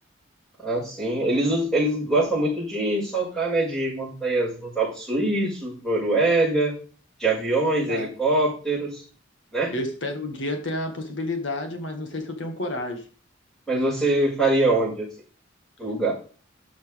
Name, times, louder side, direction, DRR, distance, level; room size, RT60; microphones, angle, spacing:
voice 1, 0.6-6.7 7.2-9.0 9.5-9.7 13.7-15.1 15.8-16.1, right 2 dB, ahead, -5 dB, 6.0 m, -23 dB
voice 2, 7.7-8.1 9.7-13.1, left 1 dB, 65° left, 5 dB, 1.8 m, -30 dB
13.5 x 6.3 x 3.5 m, 0.38 s
head